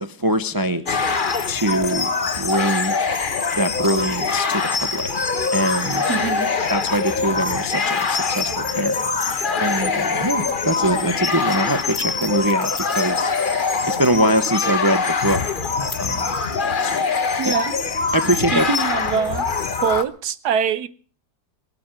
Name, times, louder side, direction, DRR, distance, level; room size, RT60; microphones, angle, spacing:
voice 1, 0.0-1.0 1.5-2.1 2.4-3.0 3.6-5.1 5.5-6.1 6.7-9.0 9.6-13.3 13.9-15.4 16.0-16.3 16.8-17.0 17.4-17.5 18.1-18.7, right 1 dB, 35° right, 0.3 m, -23 dB
sound 1, 0.9-20.0, left 4 dB, 35° left, 1.0 m, -23 dB
sound 2, 4.4-14.1, equal, 10° right, 4.0 m, -50 dB
voice 2, 6.1-6.5 17.4-17.7 18.5-19.5 19.7-20.9, right 7 dB, 65° right, 1.4 m, -23 dB
22.5 x 7.9 x 7.5 m
omnidirectional pair, 2.0 m